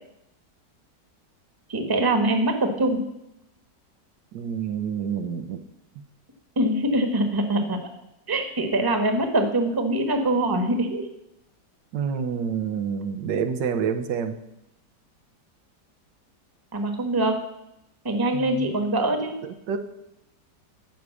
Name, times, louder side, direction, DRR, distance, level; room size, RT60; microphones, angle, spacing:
voice 1, 1.7-3.0 6.6-7.8 8.3-11.0 16.7-17.4 18.0-19.4, right 1 dB, 15° right, 6 dB, 1.0 m, -23 dB
voice 2, 4.3-5.6 11.9-14.4 18.3-18.7 19.4-19.8, right 7 dB, 90° right, 8 dB, 1.6 m, -28 dB
13.0 x 5.0 x 8.3 m, 0.85 s
omnidirectional pair, 1.9 m